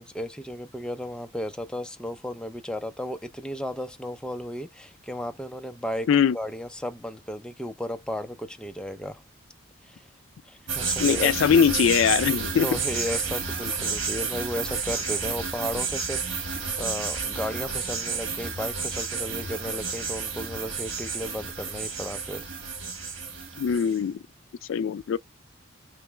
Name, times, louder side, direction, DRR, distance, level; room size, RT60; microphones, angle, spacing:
voice 1, 0.0-6.1 6.3-9.2 9.8-10.1 10.5-11.4 12.6-22.5, equal, 5° left, 0.4 m, -34 dB
sound 1, 10.7-24.0, right 5 dB, 65° right, 1.4 m, -31 dB
voice 2, 11.0-12.7 23.6-24.2 24.7-25.2, left 7 dB, 70° left, 0.3 m, -21 dB
3.3 x 3.0 x 3.3 m
head